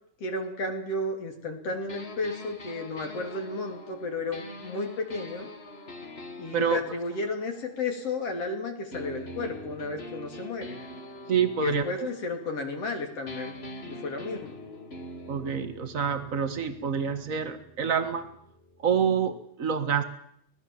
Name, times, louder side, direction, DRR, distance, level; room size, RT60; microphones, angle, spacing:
voice 1, 0.2-5.5 6.4-10.8 11.6-13.6 13.8-14.6, left 2 dB, 50° left, 3 dB, 4.0 m, -33 dB
sound 1, 1.9-8.4 8.9-12.9 13.3-19.0, left 1 dB, 30° left, 1.3 m, -44 dB
voice 2, 11.3-12.1 15.3-18.3 18.8-20.0, right 7 dB, 35° right, 9 dB, 1.5 m, -27 dB
25.0 x 18.0 x 7.2 m, 0.70 s
omnidirectional pair, 3.5 m